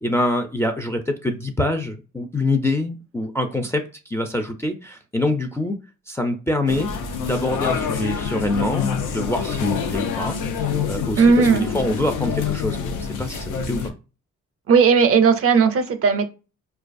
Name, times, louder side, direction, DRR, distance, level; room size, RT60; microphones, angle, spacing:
voice 1, 0.0-5.8 6.1-6.9 7.2-10.4 10.9-13.9, left 1 dB, 10° left, 3 dB, 0.4 m, -25 dB
sound 1, 6.7-13.9, left 6 dB, 85° left, 0.6 m, -26 dB
voice 2, 11.2-11.7 14.7-16.3, right 5 dB, 50° right, 9 dB, 0.5 m, -16 dB
4.5 x 2.3 x 2.5 m, 0.33 s
cardioid pair, 90°, 30 cm